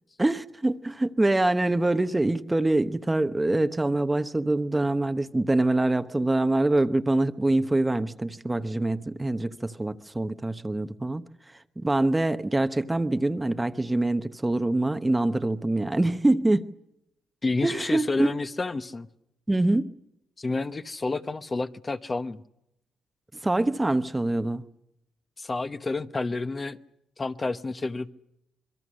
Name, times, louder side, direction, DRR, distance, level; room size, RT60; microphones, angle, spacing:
voice 1, 0.2-16.7 17.6-18.3 19.5-19.9 23.4-24.6, right 2 dB, 15° right, 0.9 m, -25 dB
voice 2, 17.4-19.1 20.4-22.4 25.4-26.8 27.2-28.1, left 3 dB, 25° left, 1.0 m, -30 dB
27.0 x 22.0 x 6.5 m
cardioid pair, 90°, 0 cm